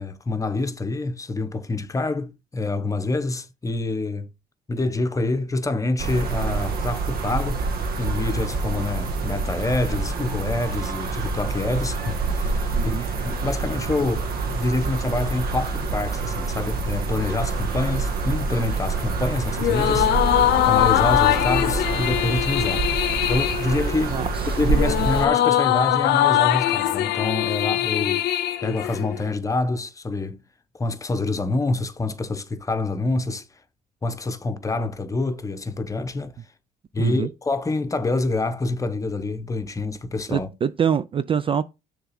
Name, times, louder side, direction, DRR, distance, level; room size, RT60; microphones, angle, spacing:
voice 1, 0.0-4.3 4.7-20.1 20.6-22.9 23.3-24.2 24.6-28.3 28.6-30.4 30.7-33.5 34.0-36.4 36.9-40.5, left 2 dB, 20° left, 0.9 m, -26 dB
sound 1, 6.0-25.3, right 4 dB, 65° right, 1.4 m, -27 dB
voice 2, 12.7-13.1 24.1-24.3 37.0-37.3 40.3-41.6, right 8 dB, 30° right, 0.4 m, -24 dB
sound 2, 19.6-29.3, left 13 dB, 80° left, 0.7 m, -22 dB
6.8 x 3.6 x 5.8 m
cardioid pair, 110°, 17 cm